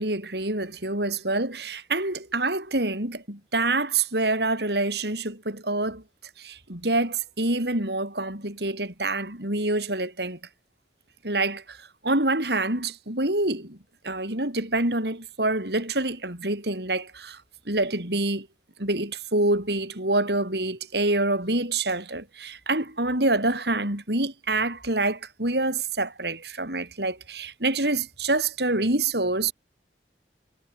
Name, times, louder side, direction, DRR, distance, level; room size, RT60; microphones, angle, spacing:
voice 1, 0.0-6.0 6.4-10.4 11.2-13.8 14.0-17.4 17.7-18.5 18.8-29.5, right 2 dB, 65° right, 6.6 m, -26 dB
head